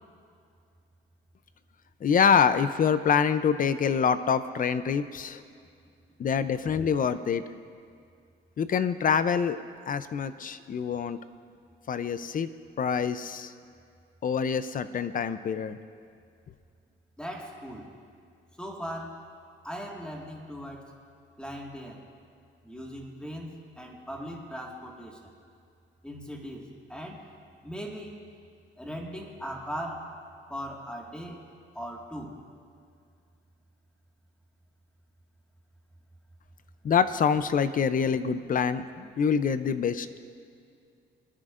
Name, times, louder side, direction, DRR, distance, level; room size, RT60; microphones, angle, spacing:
voice 1, 2.0-5.4 6.2-7.4 8.6-9.6 9.9-11.2 11.9-12.5 12.8-13.5 14.2-15.8 36.8-40.2, left 6 dB, 45° left, 13 dB, 0.6 m, -26 dB
voice 2, 17.2-17.9 18.6-19.2 19.6-20.9 21.4-22.1 22.6-25.3 26.0-27.3 27.6-28.2 28.8-30.2 30.5-31.5 31.7-32.4, equal, 5° left, -1 dB, 1.9 m, -39 dB
24.0 x 10.0 x 2.6 m, 2.3 s
cardioid pair, 90°, 20 cm